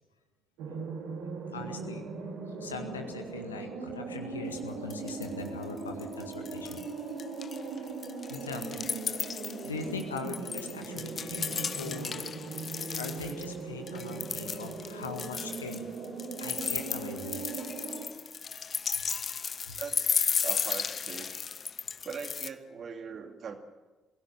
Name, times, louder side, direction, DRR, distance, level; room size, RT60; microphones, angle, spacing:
sound 1, 0.6-18.1, right 4 dB, 65° right, 3.4 m, -39 dB
voice 1, 1.5-2.0 2.6-6.8 8.3-8.8 9.3-12.2 13.0-15.9 16.4-17.4 18.9-19.0 19.6-19.8, left 4 dB, 85° left, 5 dB, 1.8 m, -41 dB
sound 2, 4.5-4.6 4.9-5.5 5.8-6.9 7.2-13.5 13.9-22.5, left 6 dB, 45° left, 0.8 m, -34 dB
voice 2, 19.8-21.3 22.0-23.6, right 6 dB, 50° right, 5 dB, 2.4 m, -41 dB
22.5 x 16.0 x 7.4 m, 1.2 s
figure-of-eight pair, 45°, 0 cm